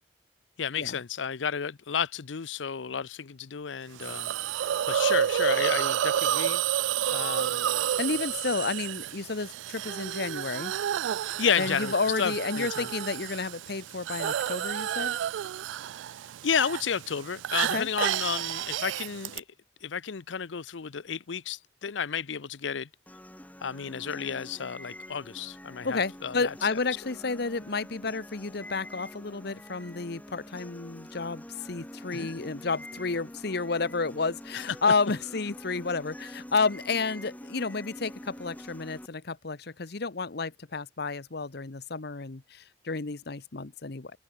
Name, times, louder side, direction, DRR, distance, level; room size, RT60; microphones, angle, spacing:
voice 1, 0.6-6.6 7.1-7.8 11.2-12.9 16.4-19.4 19.8-22.9 23.6-26.5 32.1-32.3 34.5-34.6, left 7 dB, 90° left, 0.7 m, -32 dB
Hiss, 4.0-19.4, right 10 dB, 85° right, 0.3 m, -30 dB
voice 2, 8.0-10.7 11.6-15.2 17.7-17.9 25.8-44.1, left 4 dB, 60° left, 1.0 m, -31 dB
sound 1, 23.1-39.1, left 1 dB, 10° left, 1.7 m, -45 dB
head